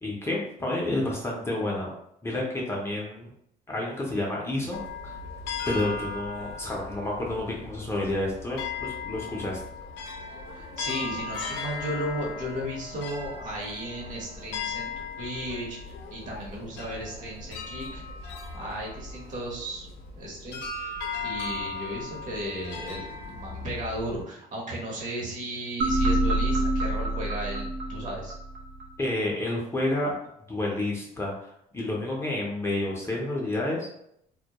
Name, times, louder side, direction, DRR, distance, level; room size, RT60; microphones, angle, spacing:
voice 1, 0.0-1.9 2.2-3.3 3.7-5.2 5.7-9.6 29.0-30.1 30.5-33.9, left 1 dB, 15° left, -3 dB, 0.5 m, -30 dB
sound 1, 4.7-24.2, left 4 dB, 85° left, 0.4 m, -37 dB
voice 2, 10.5-14.9 15.2-18.0 18.5-19.9 20.1-28.3, right 1 dB, 50° right, -3 dB, 0.9 m, -35 dB
sound 2, 25.8-28.9, right 1 dB, 70° right, 0.6 m, -26 dB
2.2 x 2.1 x 2.8 m, 0.74 s
cardioid pair, 110°, 17 cm